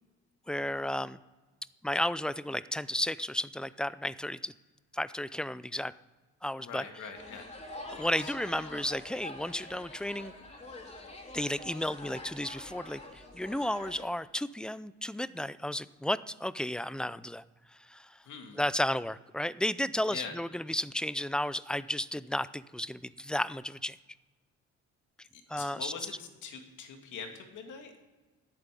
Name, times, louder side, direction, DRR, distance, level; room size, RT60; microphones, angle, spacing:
voice 1, 0.5-1.2 1.8-4.5 4.9-5.9 6.4-6.8 8.0-10.3 11.3-17.4 17.9-18.2 18.6-24.0 25.5-25.9, left 1 dB, 5° left, 17 dB, 0.5 m, -33 dB
voice 2, 6.6-7.6 7.9-8.3 18.2-18.6 20.1-20.3 25.3-28.0, left 6 dB, 80° left, 4 dB, 2.5 m, -43 dB
sound 1, 7.1-14.1, left 2 dB, 20° left, 3.2 m, -46 dB
10.5 x 9.1 x 8.5 m, 1.3 s
cardioid pair, 90°, 30 cm